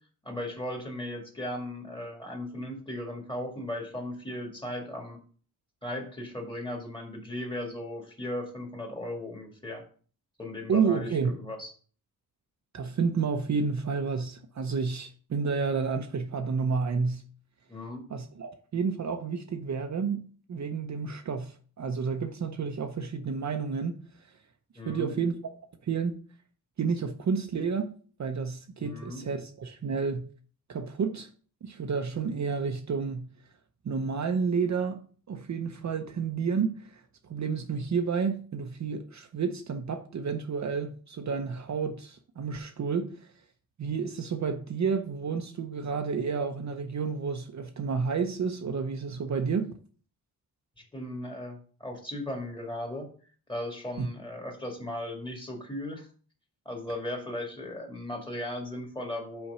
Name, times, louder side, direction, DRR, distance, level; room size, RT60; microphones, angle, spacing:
voice 1, 0.2-5.2 5.8-9.8 10.4-11.7 17.7-18.0 24.8-25.1 28.8-29.2 50.8-53.1 53.5-56.1 56.7-59.5, left 1 dB, 15° left, 1.9 m, -37 dB
voice 2, 10.7-11.3 12.7-17.2 18.1-20.2 20.5-24.0 24.9-25.5 25.8-26.2 26.8-27.9 28.2-30.3 30.7-31.3 31.6-33.3 33.8-35.0 35.3-43.3 43.8-49.8 54.0-54.1, right 5 dB, 50° right, 0.7 m, -30 dB
5.7 x 4.4 x 5.5 m
wide cardioid pair, 120°, 37 cm